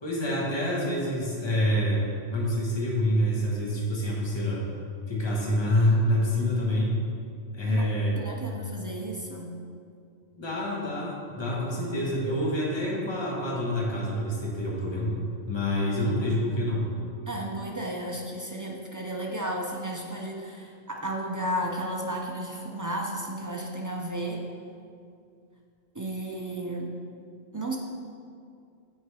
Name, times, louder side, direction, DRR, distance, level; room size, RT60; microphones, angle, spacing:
voice 1, 0.0-2.0 2.3-4.6 5.1-6.9 7.5-8.2 10.4-15.1 15.5-16.9, left 1 dB, 25° left, -4 dB, 1.2 m, -27 dB
voice 2, 8.1-9.6 17.3-24.4 25.9-27.0 27.5-27.8, right 1 dB, 30° right, -1 dB, 0.3 m, -33 dB
8.3 x 3.9 x 4.8 m, 2.3 s
omnidirectional pair, 1.2 m